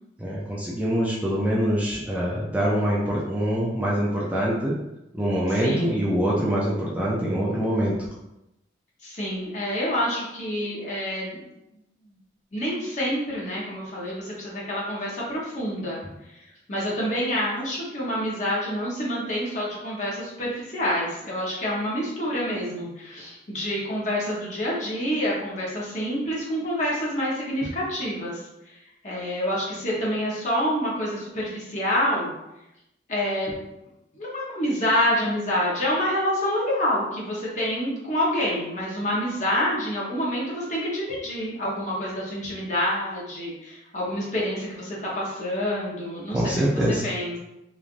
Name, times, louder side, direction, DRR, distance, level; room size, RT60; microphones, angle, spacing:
voice 1, 0.2-4.8 5.1-7.9 46.3-47.1, equal, 10° right, -6 dB, 0.3 m, -24 dB
voice 2, 5.5-6.0 9.0-11.4 12.5-16.0 16.7-28.4 29.0-32.3 33.1-33.5 34.2-46.5 47.0-47.4, equal, 40° left, -5 dB, 0.9 m, -27 dB
3.1 x 2.4 x 2.5 m, 0.89 s
head